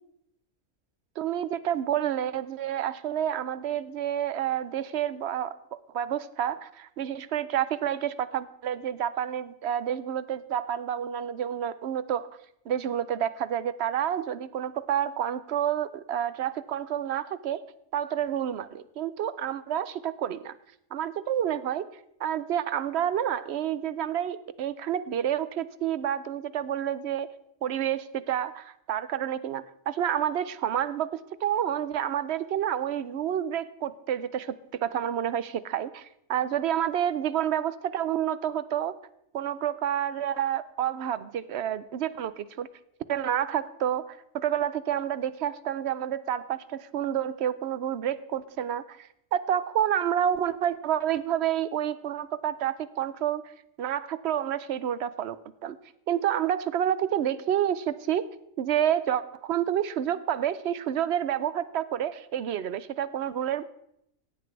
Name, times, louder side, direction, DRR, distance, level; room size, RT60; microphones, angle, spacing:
voice 1, 1.2-5.6 5.9-12.3 12.7-17.6 17.9-20.5 20.9-21.9 22.2-27.3 27.6-34.6 34.8-38.9 39.3-42.7 43.1-53.5 53.8-55.4 55.6-55.8 56.1-58.3 58.6-63.6, right 10 dB, 65° right, 15 dB, 0.8 m, -29 dB
16.5 x 8.0 x 4.7 m, 0.78 s
omnidirectional pair, 1.3 m